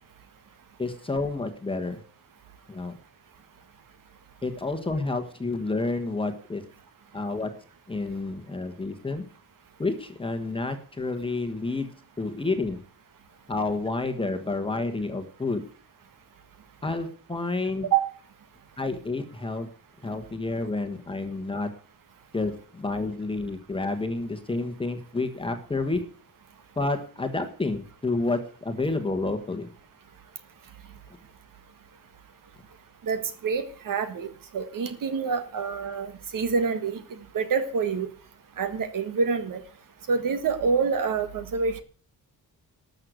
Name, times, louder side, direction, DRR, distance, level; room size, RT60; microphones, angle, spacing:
voice 1, 0.8-2.0 2.7-2.9 4.4-6.6 7.1-7.5 7.9-9.2 9.8-11.9 12.2-12.8 13.5-15.6 16.8-17.9 18.8-19.7 20.0-21.7 22.3-26.0 26.8-29.7, left 3 dB, 15° left, 6 dB, 1.3 m, -29 dB
voice 2, 33.0-34.3 34.5-38.1 38.6-39.6 40.1-41.8, right 5 dB, 55° right, 9 dB, 1.7 m, -27 dB
12.5 x 6.6 x 7.9 m, 0.42 s
wide cardioid pair, 170°, 38 cm